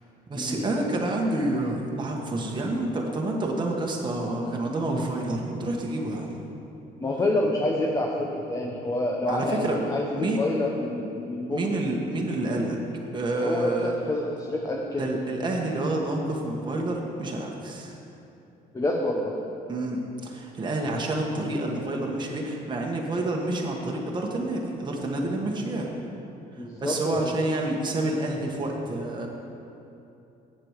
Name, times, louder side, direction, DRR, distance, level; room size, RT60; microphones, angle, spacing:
voice 1, 0.3-6.4 9.3-9.8 10.2-10.4 11.5-12.8 13.1-13.9 14.9-17.9 19.7-25.9 26.5-29.3, right 2 dB, 25° right, -1 dB, 1.3 m, -28 dB
voice 2, 7.0-11.7 13.3-15.0 18.7-19.3 26.6-27.3, left 1 dB, 20° left, 0 dB, 0.9 m, -28 dB
7.8 x 7.7 x 6.5 m, 2.8 s
cardioid pair, 110°, 17 cm